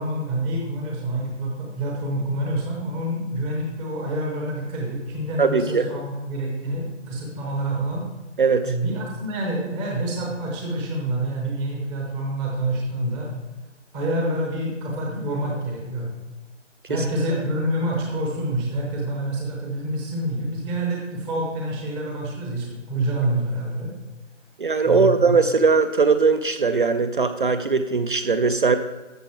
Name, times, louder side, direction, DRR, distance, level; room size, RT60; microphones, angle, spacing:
voice 1, 0.0-8.1 8.6-13.3 13.9-16.1 16.9-23.9 24.8-25.3, right 1 dB, 5° right, -1 dB, 0.8 m, -27 dB
voice 2, 5.4-5.9 8.4-8.7 24.6-28.8, right 4 dB, 45° right, 9 dB, 0.6 m, -20 dB
13.5 x 7.4 x 4.4 m, 1.1 s
figure-of-eight pair, 145°, 37 cm